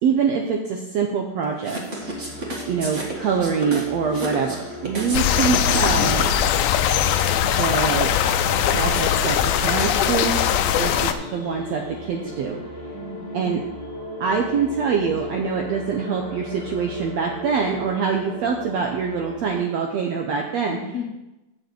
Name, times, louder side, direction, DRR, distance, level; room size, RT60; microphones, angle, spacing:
voice 1, 0.0-1.8 2.6-6.3 7.6-8.1 8.7-10.4 10.8-12.6 13.3-13.6 14.2-20.8, right 6 dB, 75° right, 1 dB, 1.6 m, -24 dB
sound 1, 1.6-6.5, right 1 dB, 35° right, 1.3 m, -32 dB
sound 2, 1.8-19.6, left 1 dB, 40° left, 1.9 m, -38 dB
sound 3, 5.1-11.1, left 9 dB, 80° left, 1.9 m, -20 dB
voice 2, 10.7-11.3 12.9-13.6 20.7-21.1, left 5 dB, 60° left, 0 dB, 2.0 m, -35 dB
7.1 x 6.7 x 7.8 m, 0.98 s
omnidirectional pair, 3.9 m